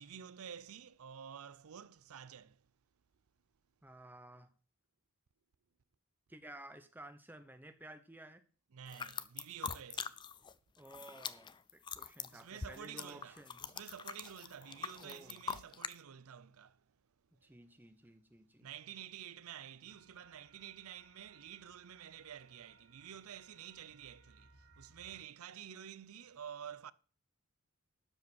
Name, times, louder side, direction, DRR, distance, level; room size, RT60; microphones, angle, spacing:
voice 1, 0.0-2.7 8.7-10.2 12.2-17.6 18.6-26.9, right 9 dB, 75° right, 0.5 m, -50 dB
voice 2, 3.8-4.5 6.3-8.4 10.8-13.6 15.0-15.4 17.4-18.7, right 1 dB, 10° right, 0.9 m, -54 dB
sound 1, 8.9-10.5 10.8-16.0, left 6 dB, 20° left, 0.4 m, -43 dB
sound 2, 19.9-25.2, right 3 dB, 55° right, 1.5 m, -65 dB
12.5 x 5.1 x 6.2 m
head